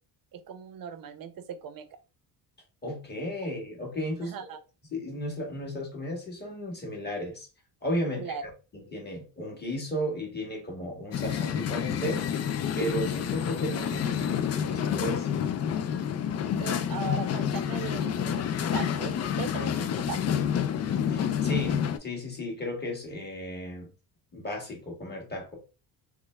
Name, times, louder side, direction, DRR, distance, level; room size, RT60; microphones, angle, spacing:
voice 1, 0.3-2.0 4.2-4.6 8.1-8.4 16.3-20.4, right 7 dB, 50° right, 9 dB, 0.7 m, -39 dB
voice 2, 2.8-4.3 4.9-7.5 7.8-8.3 8.7-12.4 12.8-15.3 21.1-23.9 24.3-25.6, equal, 25° left, -1 dB, 1.8 m, -34 dB
sound 1, 11.1-22.0, left 8 dB, 40° left, 0.4 m, -29 dB
3.1 x 2.2 x 3.3 m, 0.31 s
cardioid pair, 85°, 43 cm